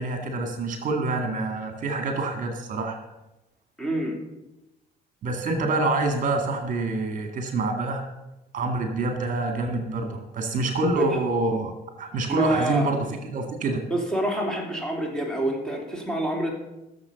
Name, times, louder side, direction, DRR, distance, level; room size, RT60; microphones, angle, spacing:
voice 1, 0.0-3.0 5.2-8.0 8.5-11.7 12.0-13.8, right 2 dB, 50° right, 5 dB, 2.0 m, -26 dB
voice 2, 3.8-4.2 11.0-11.2 12.3-12.9 13.9-16.5, right 1 dB, 5° left, 0 dB, 3.4 m, -27 dB
15.0 x 7.2 x 7.0 m, 0.97 s
cardioid pair, 110°, 17 cm